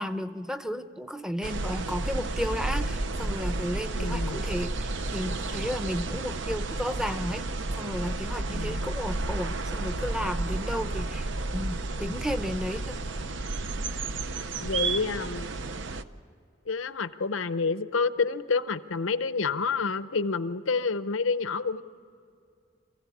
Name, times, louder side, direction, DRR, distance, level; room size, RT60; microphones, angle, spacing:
voice 1, 0.0-13.0, equal, 5° right, 10 dB, 0.7 m, -33 dB
sound 1, 1.4-16.0, right 2 dB, 70° right, 0.8 m, -32 dB
voice 2, 4.0-4.5 8.5-8.9 14.6-15.5 16.7-21.8, left 4 dB, 85° left, 13 dB, 0.8 m, -28 dB
27.0 x 16.0 x 8.5 m, 2.3 s
head